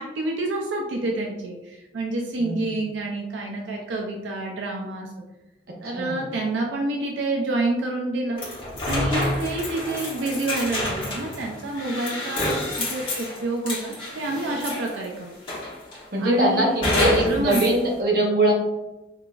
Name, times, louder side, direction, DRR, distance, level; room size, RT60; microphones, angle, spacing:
voice 1, 0.0-5.1 5.8-15.4 16.2-17.7, right 2 dB, 85° right, 0 dB, 0.4 m, -28 dB
voice 2, 2.4-2.8 5.7-6.3 16.1-18.5, right 1 dB, 55° right, -1 dB, 0.8 m, -23 dB
sound 1, 8.4-15.0 15.5-16.1 16.8-17.8, left 1 dB, 30° left, 1.0 m, -28 dB
4.7 x 2.5 x 2.3 m, 1.0 s
head